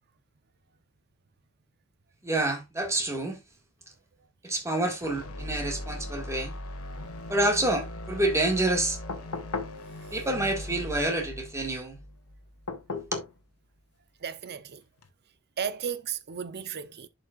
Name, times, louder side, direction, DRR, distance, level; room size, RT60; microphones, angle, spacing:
voice 1, 2.2-3.4 4.4-6.5 7.3-9.0 10.1-12.0 12.9-13.1, right 1 dB, 15° right, 1.8 m, -28 dB
sound 1, 5.0-13.1, left 1 dB, 70° left, 1.5 m, -40 dB
sound 2, 9.1-9.8 12.7-13.4 15.0-15.1, left 3 dB, 90° left, 1.3 m, -35 dB
voice 2, 14.2-14.8 15.6-17.1, right 7 dB, 50° right, 0.7 m, -34 dB
11.0 x 5.2 x 2.4 m
head